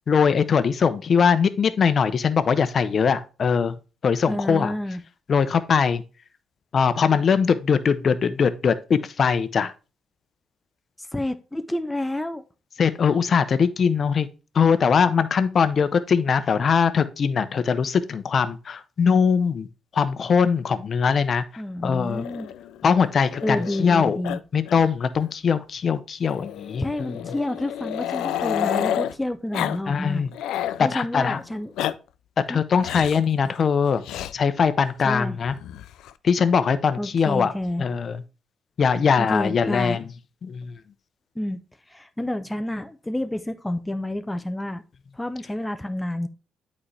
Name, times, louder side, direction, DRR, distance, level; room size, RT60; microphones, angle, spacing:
voice 1, 0.1-3.7 4.0-4.7 5.3-6.0 6.7-9.7 12.8-14.3 14.5-19.7 19.9-21.4 21.8-22.2 22.8-24.2 24.5-27.1 29.9-30.3 30.8-31.4 32.5-34.0 34.3-35.5 36.2-37.5 37.8-38.2 38.8-40.0 40.4-40.7, left 6 dB, 50° left, 0.7 m, -21 dB
voice 2, 4.3-5.0 11.0-12.4 21.6-22.5 23.4-24.4 26.8-30.2 30.8-31.7 32.5-32.6 35.0-35.4 37.0-37.9 39.2-40.0 41.4-41.6 41.9-44.8 45.1-46.3, left 1 dB, 10° left, 0.5 m, -29 dB
Growling, 22.1-23.9 24.2-24.4 24.6-24.8 25.1-25.2 26.3-29.1 29.5-29.8 30.1-30.8 31.5-31.9 32.8-33.2 34.0-34.3 35.4-36.1, left 11 dB, 85° left, 0.3 m, -30 dB
8.6 x 4.2 x 3.3 m
cardioid pair, 90°, 0 cm